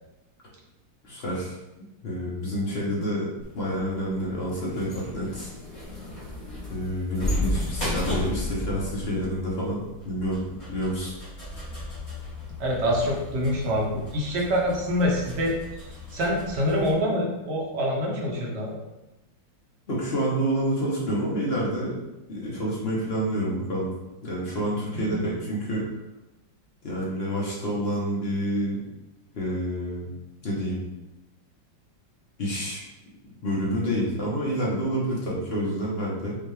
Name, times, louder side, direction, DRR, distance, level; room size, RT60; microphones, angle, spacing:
voice 1, 1.0-1.5 2.0-3.3 3.5-5.5 6.7-10.4 10.7-11.1 19.9-22.0 22.3-23.9 24.2-25.8 26.8-28.8 29.3-30.1 30.4-30.8 32.4-32.9 33.4-36.4, equal, 45° left, -5 dB, 0.8 m, -28 dB
sound 1, 3.4-16.9, left 1 dB, 20° left, 1.1 m, -34 dB
voice 2, 12.6-15.5 16.1-18.8 25.1-25.2, equal, 65° right, -1 dB, 1.3 m, -25 dB
5.4 x 2.4 x 3.2 m, 0.98 s
omnidirectional pair, 2.1 m